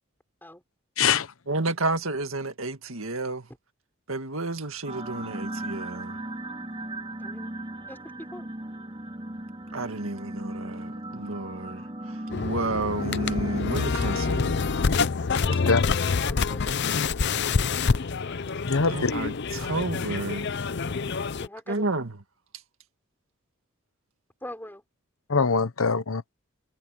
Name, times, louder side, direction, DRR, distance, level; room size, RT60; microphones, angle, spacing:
voice 1, 1.0-1.3 15.5-15.8 18.6-19.1 25.3-26.2, left 5 dB, 75° left, 1.0 m, -23 dB
voice 2, 1.5-3.5 4.1-6.2 9.7-11.9 12.4-14.6 18.9-20.5 21.7-22.1, right 2 dB, 70° right, 2.0 m, -31 dB
sound 1, 4.8-13.6, right 1 dB, 25° right, 3.9 m, -37 dB
voice 3, 7.2-7.6 7.9-8.5 15.4-15.8 16.2-16.8 20.8-21.8 24.4-24.8 25.5-25.6, left 1 dB, 10° left, 5.7 m, -43 dB
sound 2, 12.3-21.5, left 5 dB, 55° left, 0.6 m, -27 dB
head